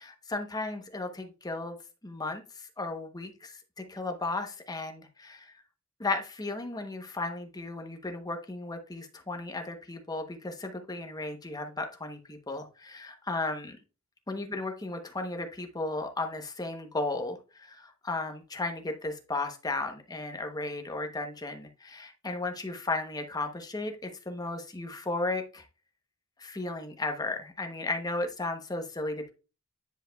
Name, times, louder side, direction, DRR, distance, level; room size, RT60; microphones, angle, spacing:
voice 1, 0.0-1.8 2.0-5.5 6.0-13.8 14.3-25.6 26.4-29.3, left 2 dB, 15° left, 5 dB, 0.9 m, -35 dB
10.0 x 4.8 x 2.3 m, 0.32 s
head